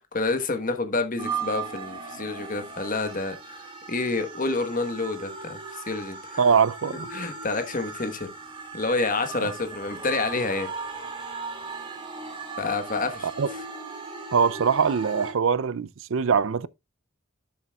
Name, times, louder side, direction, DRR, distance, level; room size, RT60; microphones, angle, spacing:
voice 1, 0.1-3.6 3.9-6.4 7.1-8.3 8.7-10.7 12.6-13.3, left 3 dB, 35° left, 1.2 m, -28 dB
sound 1, 1.2-15.3, right 4 dB, 20° right, 2.2 m, -37 dB
voice 2, 6.4-7.1 9.4-9.5 13.2-13.5 14.3-16.7, right 6 dB, 60° right, 0.4 m, -22 dB
12.0 x 7.1 x 2.3 m
head